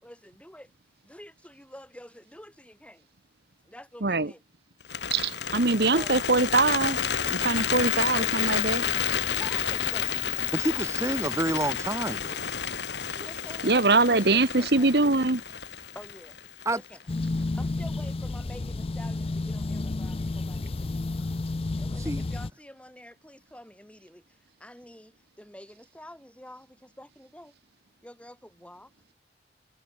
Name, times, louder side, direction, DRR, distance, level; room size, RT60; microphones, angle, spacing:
voice 1, 0.0-0.7 1.0-3.1 3.6-4.4 5.5-6.1 9.2-10.3 10.7-11.1 13.1-14.9 15.9-16.4 16.6-17.0 17.6-21.0 21.8-27.5 28.0-29.1, left 1 dB, 5° left, 6.0 m, -48 dB
Bird, 4.8-17.0, left 7 dB, 75° left, 2.7 m, -30 dB
voice 2, 5.1-7.0 7.3-8.9 13.6-15.4, right 3 dB, 65° right, 1.4 m, -23 dB
voice 3, 10.5-12.4 16.6-16.8 22.0-22.3, right 1 dB, 15° right, 4.6 m, -29 dB
sound 1, 17.1-22.5, left 2 dB, 35° left, 0.5 m, -31 dB
head